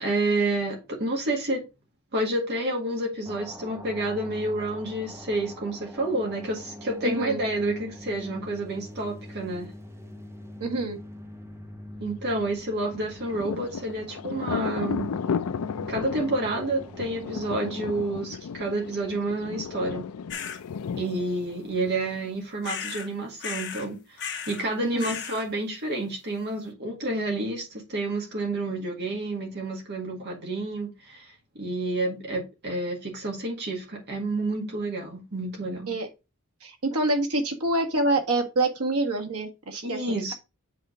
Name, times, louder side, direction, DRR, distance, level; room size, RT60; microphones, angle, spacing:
voice 1, 0.0-1.6 2.1-9.7 12.0-15.2 15.9-20.1 21.0-35.9 39.8-40.3, right 2 dB, 50° right, 1.9 m, -29 dB
sound 1, 3.3-18.2, equal, 10° right, 0.9 m, -43 dB
voice 2, 7.0-7.4 10.6-11.0 24.8-25.1 35.9-36.1 36.6-40.3, right 2 dB, 80° right, 1.7 m, -26 dB
Thunder, 12.8-22.3, left 6 dB, 75° left, 0.4 m, -34 dB
sound 2, 20.3-20.6 22.6-23.1 23.4-23.9 24.2-24.7 25.0-25.5, left 7 dB, 55° left, 1.1 m, -35 dB
7.7 x 3.8 x 5.0 m
head